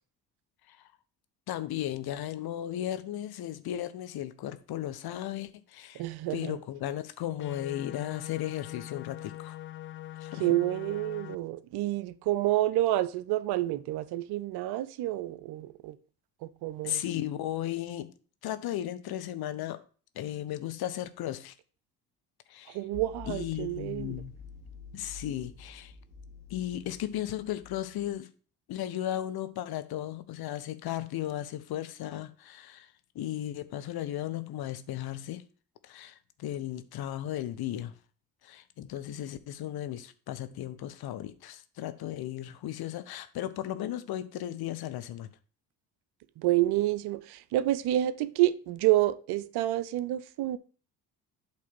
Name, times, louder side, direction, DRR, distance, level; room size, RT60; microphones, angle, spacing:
voice 1, 1.5-6.0 6.3-9.6 10.2-10.5 16.8-18.1 18.4-19.8 20.1-21.5 22.5-22.8 23.3-24.3 24.9-25.9 26.5-28.3 28.7-35.4 35.8-37.9 38.4-45.3, left 12 dB, 50° left, 0.9 m, -35 dB
voice 2, 5.9-6.6 10.3-16.0 16.4-17.0 22.7-24.2 46.4-50.6, right 15 dB, 55° right, 0.7 m, -29 dB
sound 1, 7.4-11.4, left 14 dB, 30° left, 0.4 m, -42 dB
sound 2, 22.9-28.1, left 4 dB, 85° left, 1.3 m, -48 dB
8.4 x 3.3 x 6.1 m
hypercardioid pair, 50°, 46 cm